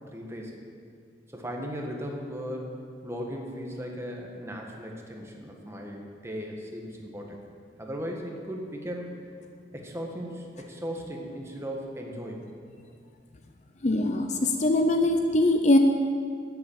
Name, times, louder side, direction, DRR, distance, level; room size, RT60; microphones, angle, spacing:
voice 1, 0.1-0.6 1.3-7.4 7.8-9.3 9.7-12.5, equal, 15° right, 0 dB, 1.6 m, -37 dB
voice 2, 13.8-15.8, left 1 dB, 35° left, 5 dB, 0.7 m, -22 dB
12.5 x 9.7 x 7.4 m, 2.2 s
head